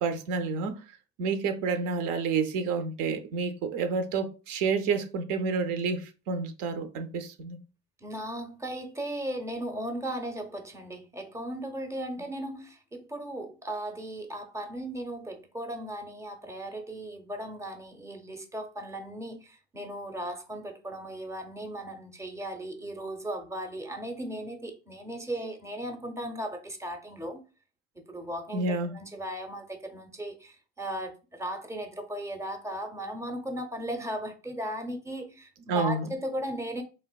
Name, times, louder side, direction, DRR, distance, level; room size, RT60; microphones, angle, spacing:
voice 1, 0.0-0.8 1.2-7.6 28.5-28.9 35.7-36.1, right 4 dB, 65° right, 0.6 m, -29 dB
voice 2, 8.0-27.4 28.1-36.8, right 1 dB, 10° right, 0.6 m, -37 dB
3.3 x 2.5 x 2.2 m
supercardioid pair, 85°, 33 cm